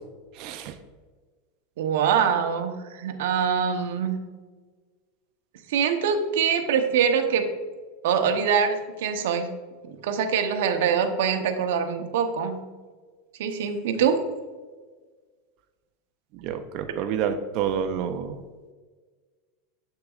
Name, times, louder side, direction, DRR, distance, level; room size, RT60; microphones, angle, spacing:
voice 1, 0.4-0.7 16.4-18.4, right 8 dB, 45° right, 7 dB, 0.5 m, -28 dB
voice 2, 1.8-4.2 5.7-7.5 8.0-9.5 10.0-12.6 13.4-14.2, right 7 dB, 75° right, 6 dB, 0.8 m, -24 dB
8.1 x 6.6 x 2.4 m, 1.4 s
supercardioid pair, 145°, 0 cm